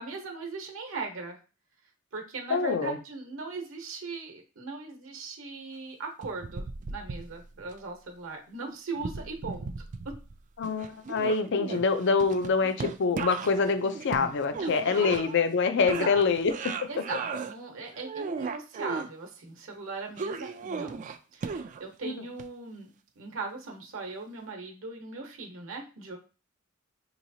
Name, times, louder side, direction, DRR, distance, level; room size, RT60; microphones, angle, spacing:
voice 1, 0.0-1.4 2.1-9.7 10.0-10.1 14.5-15.2 15.8-16.2 16.9-21.0 21.3-22.9 23.2-26.2, right 4 dB, 70° right, 2 dB, 0.9 m, -39 dB
voice 2, 2.5-3.0 10.6-16.7 22.0-22.1, left 4 dB, 60° left, 9 dB, 0.5 m, -25 dB
sound 1, 6.2-7.7 9.0-10.4 10.6-15.6 15.9-17.5 17.9-19.1 20.2-21.9 22.4-22.5, right 4 dB, 40° right, 0.3 m, -36 dB
4.7 x 3.0 x 2.7 m, 0.34 s
head